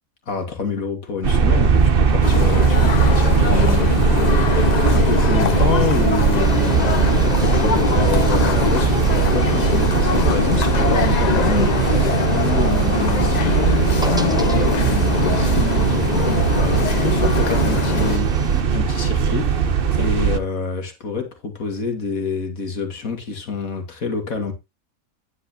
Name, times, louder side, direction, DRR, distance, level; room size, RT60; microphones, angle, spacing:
voice 1, 0.3-24.5, left 4 dB, 75° left, 2.4 m, -27 dB
sound 1, 1.2-20.4, right 6 dB, 45° right, 1.0 m, -19 dB
sound 2, 2.2-18.2, left 6 dB, 50° left, 0.5 m, -23 dB
sound 3, 6.4-18.6, equal, 5° right, 0.7 m, -33 dB
10.5 x 9.4 x 2.8 m
omnidirectional pair, 1.5 m